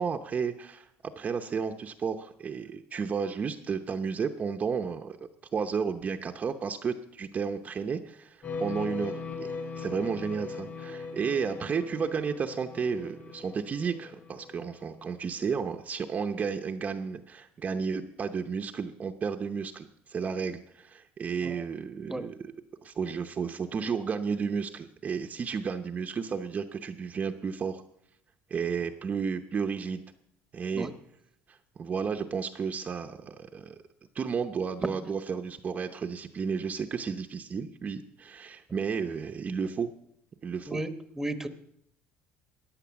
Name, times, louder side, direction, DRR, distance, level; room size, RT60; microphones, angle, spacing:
voice 1, 0.0-5.2 5.5-22.5 22.8-27.8 28.5-30.0 30.5-30.9 31.5-33.8 34.1-39.9 40.4-40.8, right 6 dB, 30° right, 5 dB, 0.8 m, -32 dB
sound 1, 8.4-15.1, left 4 dB, 35° left, 3.6 m, -39 dB
voice 2, 41.2-41.5, right 1 dB, 10° right, 9 dB, 1.0 m, -33 dB
14.5 x 9.8 x 7.0 m, 0.74 s
cardioid pair, 130°, 5 cm